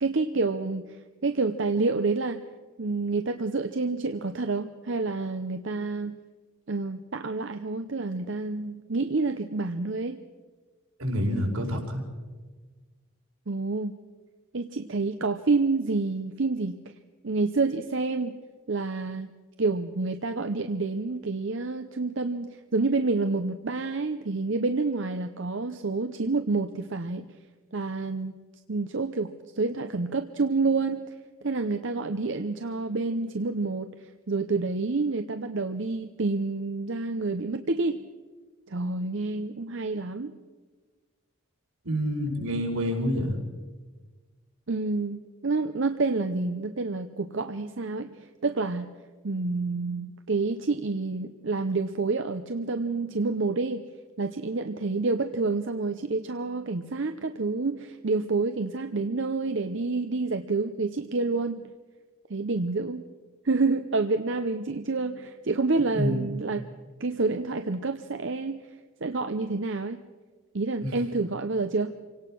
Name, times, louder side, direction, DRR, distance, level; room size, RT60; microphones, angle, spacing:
voice 1, 0.0-1.0 1.2-2.4 2.8-6.2 6.7-10.2 13.5-13.9 14.5-16.9 17.2-18.4 18.7-19.3 19.6-27.4 27.7-28.4 28.7-31.0 31.4-38.1 38.7-40.4 44.7-48.9 49.2-53.8 54.2-61.7 62.3-63.1 63.4-66.7 67.0-68.6 69.0-70.0 70.5-71.9, right 3 dB, 55° right, 8 dB, 0.7 m, -28 dB
voice 2, 11.0-12.0 41.8-43.4 65.9-66.3 70.8-70.9, equal, 80° right, 0 dB, 5.1 m, -27 dB
27.0 x 18.0 x 6.2 m, 1.4 s
head